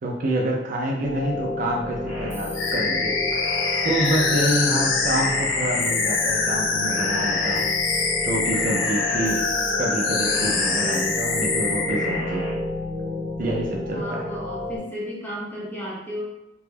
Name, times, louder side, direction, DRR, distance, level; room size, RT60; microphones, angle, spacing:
voice 1, 0.0-3.1 3.8-7.7 8.2-9.4 9.8-12.6 13.4-14.3, right 1 dB, 45° right, -1 dB, 0.4 m, -27 dB
sound 1, 1.0-14.8, left 2 dB, 85° right, 0.8 m, -32 dB
sound 2, 2.1-2.7 3.3-4.5 5.1-6.3 6.8-8.0 8.5-9.7 10.2-11.4 11.9-12.5, left 1 dB, 40° left, 0.7 m, -37 dB
sound 3, 2.5-12.2, left 4 dB, 85° left, 0.4 m, -24 dB
voice 2, 13.9-16.2, equal, 10° left, -7 dB, 0.6 m, -33 dB
2.2 x 2.0 x 3.1 m, 0.96 s
head